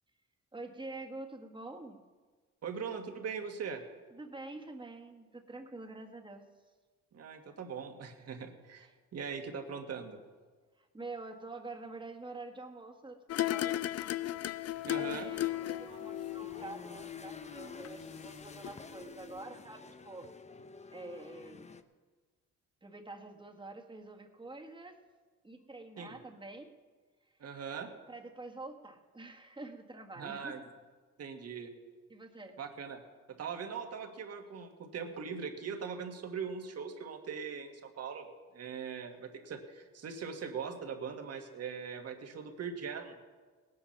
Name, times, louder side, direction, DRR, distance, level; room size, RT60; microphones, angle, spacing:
voice 1, 0.5-2.0 4.1-6.4 8.8-9.0 10.8-13.8 14.9-20.3 20.9-21.7 22.8-25.0 25.4-26.7 28.1-30.7 32.1-32.6, right 2 dB, 15° right, 3 dB, 1.6 m, -47 dB
voice 2, 2.6-3.8 7.1-10.2 14.8-15.3 26.0-26.1 27.4-27.9 30.2-30.6 31.2-31.7 32.6-33.0 33.3-38.3 38.5-43.2, right 6 dB, 55° right, 5 dB, 1.8 m, -41 dB
sound 1, 13.3-18.4 18.6-18.7, left 14 dB, 55° left, 0.5 m, -36 dB
sound 2, 14.7-21.8, left 4 dB, 20° left, 0.8 m, -50 dB
18.0 x 9.5 x 5.8 m, 1.4 s
cardioid pair, 90°, 30 cm